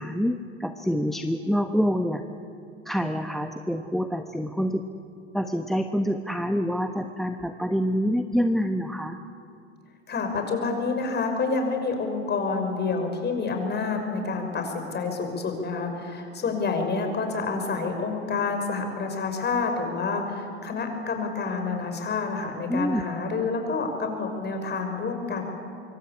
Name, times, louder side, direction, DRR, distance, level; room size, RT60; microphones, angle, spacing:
voice 1, 0.0-2.2 2.8-4.8 5.3-9.2 22.7-23.0, equal, ahead, 7 dB, 1.1 m, -26 dB
voice 2, 10.1-25.4, left 4 dB, 30° left, 5 dB, 6.0 m, -28 dB
26.0 x 24.0 x 8.6 m, 2.5 s
hypercardioid pair, 90°, 35 cm